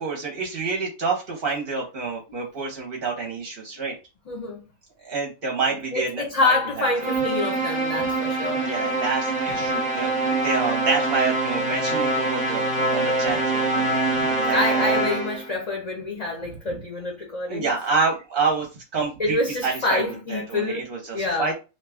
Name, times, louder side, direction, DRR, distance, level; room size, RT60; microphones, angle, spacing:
voice 1, 0.0-3.9 5.0-6.5 8.5-14.9 16.7-16.8 17.5-18.7 18.9-19.4 19.6-20.0 20.3-21.5, right 4 dB, 50° right, 0.8 m, -28 dB
voice 2, 4.3-4.6 5.9-8.6 14.5-17.7 19.2-21.5, left 2 dB, 35° left, 0.8 m, -26 dB
sound 1, 7.0-15.5, right 2 dB, 10° right, 0.4 m, -24 dB
2.7 x 2.2 x 3.4 m
omnidirectional pair, 1.3 m